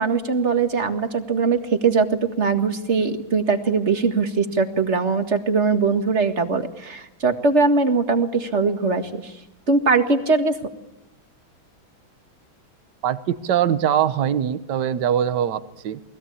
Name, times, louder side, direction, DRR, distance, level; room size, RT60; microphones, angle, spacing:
voice 1, 0.0-9.3 9.7-10.5, right 4 dB, 35° right, 7 dB, 2.1 m, -21 dB
voice 2, 13.0-16.0, right 9 dB, 60° right, 12 dB, 1.6 m, -22 dB
29.0 x 20.0 x 8.6 m, 0.95 s
omnidirectional pair, 2.2 m